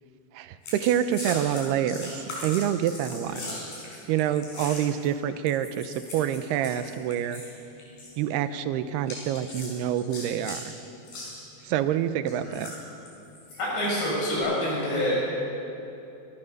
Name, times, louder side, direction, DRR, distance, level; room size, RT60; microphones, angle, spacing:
voice 1, 0.3-3.4 4.1-7.4 8.2-10.7 11.6-12.7, right 10 dB, 80° right, 11 dB, 2.7 m, -27 dB
sound 1, 0.6-5.1 5.5-7.5 7.8-8.1 9.1-10.6 11.0-11.3 12.3-13.6 14.2-14.4, left 2 dB, 60° left, 7.3 m, -39 dB
voice 2, 3.3-3.6 12.4-12.6 13.6-15.3, equal, 85° left, -5 dB, 8.1 m, -27 dB
28.5 x 14.5 x 6.6 m, 2.8 s
omnidirectional pair, 4.7 m